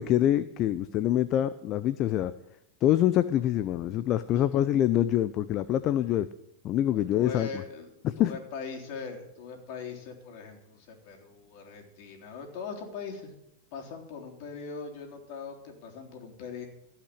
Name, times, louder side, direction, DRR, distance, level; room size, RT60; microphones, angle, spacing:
voice 1, 0.0-2.3 2.8-6.3 6.6-7.5 8.0-8.3, left 12 dB, 35° left, 13 dB, 0.5 m, -25 dB
voice 2, 4.3-4.7 6.9-13.3 13.7-16.7, left 5 dB, 55° left, 1 dB, 3.5 m, -41 dB
15.5 x 5.9 x 10.0 m, 0.82 s
supercardioid pair, 135°, 0 cm